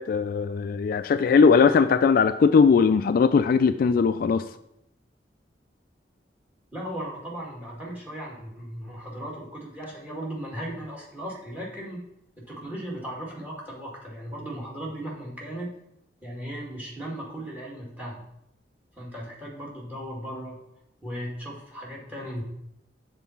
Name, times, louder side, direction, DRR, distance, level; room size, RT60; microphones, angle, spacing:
voice 1, 0.0-4.4, left 5 dB, 55° left, 10 dB, 0.3 m, -19 dB
voice 2, 6.7-12.0 12.4-15.7 16.2-18.2 19.0-20.6 21.0-22.4, right 1 dB, 10° right, -3 dB, 2.0 m, -37 dB
7.2 x 4.0 x 5.7 m, 0.80 s
head